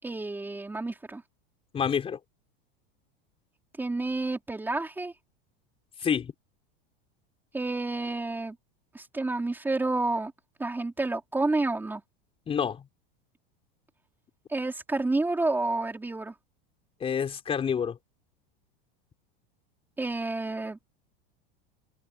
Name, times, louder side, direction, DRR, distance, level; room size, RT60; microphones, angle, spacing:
voice 1, 0.0-1.2 3.8-5.1 7.5-8.6 8.9-10.3 10.6-12.0 14.5-16.3 20.0-20.8, right 2 dB, 5° right, 4.0 m, -29 dB
voice 2, 1.7-2.2 6.0-6.3 12.5-12.9 17.0-18.0, left 7 dB, 20° left, 5.0 m, -28 dB
open air
supercardioid pair, 160°, 29 cm